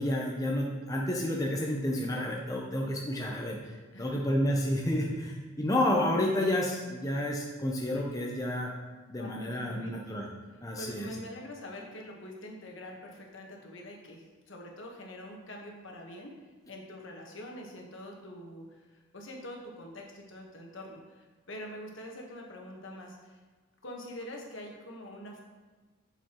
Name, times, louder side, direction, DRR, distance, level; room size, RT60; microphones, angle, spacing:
voice 1, 0.0-8.7 9.1-10.3 10.6-11.1, left 1 dB, 15° left, -1 dB, 0.6 m, -30 dB
voice 2, 3.9-4.2 9.2-10.1 10.5-23.4 23.8-25.4, left 1 dB, 60° left, 0 dB, 1.2 m, -45 dB
7.5 x 6.8 x 3.0 m, 1.4 s
head